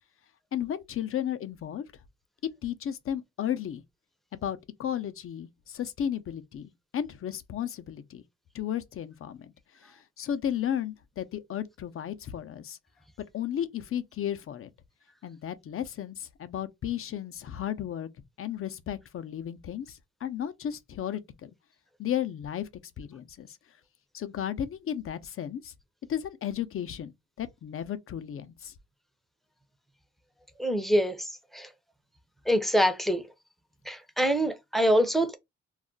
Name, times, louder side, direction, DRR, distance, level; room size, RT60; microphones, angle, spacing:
voice 1, 0.5-1.9 2.6-3.8 4.3-8.2 8.5-9.5 9.8-12.8 13.3-14.7 15.2-18.1 18.4-21.5 22.0-22.7 23.0-23.6 24.1-25.7 26.1-27.1 27.4-28.7, left 10 dB, 45° left, 0.5 m, -34 dB
voice 2, 30.6-31.7 32.5-33.2 33.9-35.4, equal, ahead, 0.6 m, -25 dB
2.4 x 2.0 x 3.7 m
cardioid pair, 90°, 30 cm